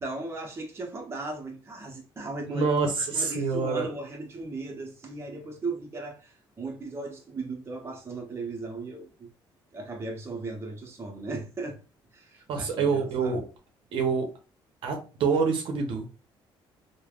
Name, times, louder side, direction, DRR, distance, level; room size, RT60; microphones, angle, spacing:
voice 1, 0.0-2.7 3.1-9.3 9.7-11.8 12.1-13.3, right 3 dB, 30° right, 0.8 m, -37 dB
voice 2, 2.5-3.9 12.5-13.5 13.9-14.3 14.8-16.1, right 5 dB, 70° right, 0.7 m, -26 dB
3.2 x 2.1 x 2.4 m
cardioid pair, 105°, 9 cm